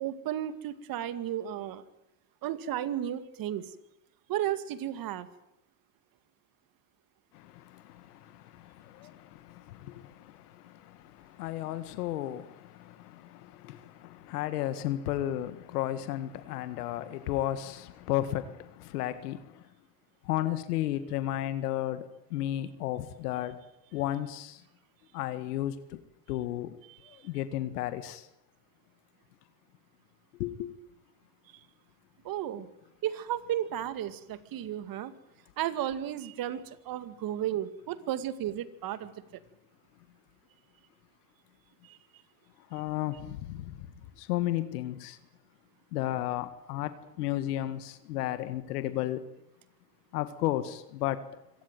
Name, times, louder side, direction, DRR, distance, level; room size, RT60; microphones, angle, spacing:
voice 1, 0.0-1.8 2.4-3.7 4.3-5.3 32.2-32.7 33.0-35.1 35.6-39.1 41.9-42.0, right 11 dB, 50° right, 2.3 m, -33 dB
voice 2, 7.3-19.6 20.2-23.6 23.9-24.6 25.1-26.0 26.3-26.8 27.1-28.3 30.4-30.7 42.7-43.9 44.2-45.2 45.9-49.2 50.1-51.2, left 13 dB, 85° left, 1.8 m, -34 dB
25.0 x 17.5 x 9.3 m
supercardioid pair, 110°, 45 cm